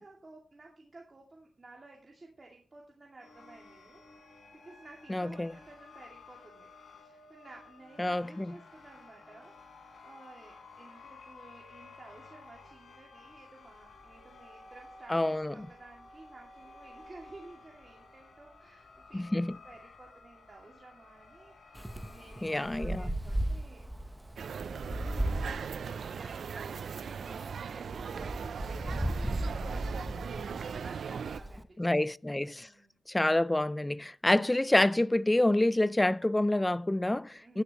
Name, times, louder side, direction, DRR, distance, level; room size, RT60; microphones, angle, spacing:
voice 1, 0.0-4.0 4.3-21.7 22.0-23.9 24.9-25.5 25.8-31.9 32.5-33.0 37.4-37.6, right 2 dB, 35° right, 2.4 m, -54 dB
sound 1, 3.2-23.1, left 3 dB, 75° left, 3.9 m, -54 dB
voice 2, 5.1-5.5 8.0-8.5 15.1-15.5 19.1-19.6 22.4-23.0 31.8-32.7 33.1-37.6, left 1 dB, 15° left, 0.4 m, -27 dB
Wind, 21.8-31.6, right 1 dB, 10° right, 1.0 m, -36 dB
sound 2, 24.4-31.4, right 6 dB, 80° right, 0.4 m, -39 dB
15.5 x 10.5 x 3.0 m
wide cardioid pair, 85°, 0 cm